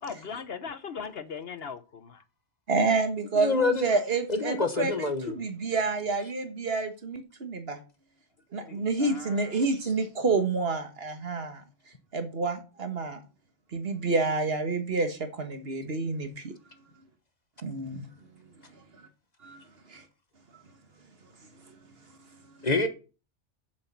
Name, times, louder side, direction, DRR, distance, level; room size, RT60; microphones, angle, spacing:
voice 1, 0.0-2.2 8.6-9.6, left 6 dB, 60° left, 1.0 m, -39 dB
voice 2, 2.7-7.8 8.5-11.6 12.1-13.2 13.7-16.5 17.6-18.1 18.9-19.1 19.4-19.6 19.9-20.0 21.7-21.8, right 3 dB, 55° right, 1.6 m, -29 dB
voice 3, 3.3-3.9 4.3-5.3 22.6-22.9, left 3 dB, 35° left, 1.1 m, -26 dB
8.5 x 7.3 x 5.6 m
omnidirectional pair, 1.3 m